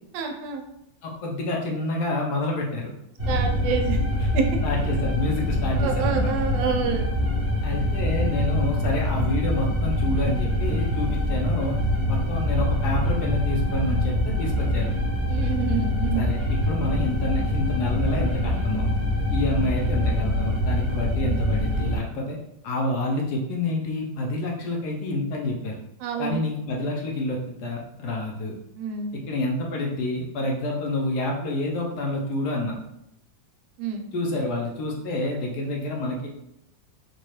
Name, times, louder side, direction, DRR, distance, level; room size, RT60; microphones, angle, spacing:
voice 1, 0.1-0.6 3.3-4.0 4.3-4.4 5.8-7.0 15.3-16.2 26.0-26.4 28.8-29.1 33.8-34.1, right 6 dB, 80° right, 3 dB, 1.3 m, -27 dB
voice 2, 1.0-2.9 3.3-3.4 4.2-4.3 4.6-6.3 7.6-11.8 12.1-14.9 16.1-18.9 19.3-22.4 22.6-25.7 26.2-28.5 29.1-32.8 34.1-36.3, left 1 dB, 70° left, -1 dB, 1.1 m, -28 dB
sound 1, 3.2-22.0, left 1 dB, 10° right, 0.6 m, -24 dB
4.0 x 2.2 x 3.1 m, 0.81 s
omnidirectional pair, 2.0 m